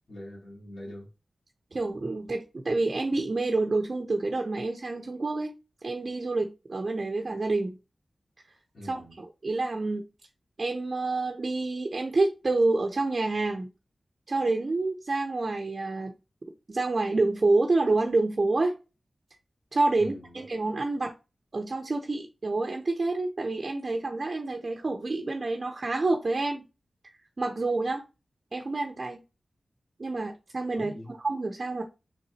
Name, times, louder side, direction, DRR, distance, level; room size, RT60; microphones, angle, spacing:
voice 1, 0.1-1.1 8.7-9.2 20.0-20.4 30.7-31.1, equal, 80° left, 2.7 m, -43 dB
voice 2, 1.7-5.5 5.8-7.8 8.8-10.0 10.6-13.7 14.3-16.1 16.7-18.8 19.7-21.1 21.5-26.6 27.4-28.0 28.5-29.2 30.0-31.8, right 2 dB, 50° right, 0.7 m, -28 dB
4.6 x 4.1 x 2.8 m
wide cardioid pair, 70°, 0 cm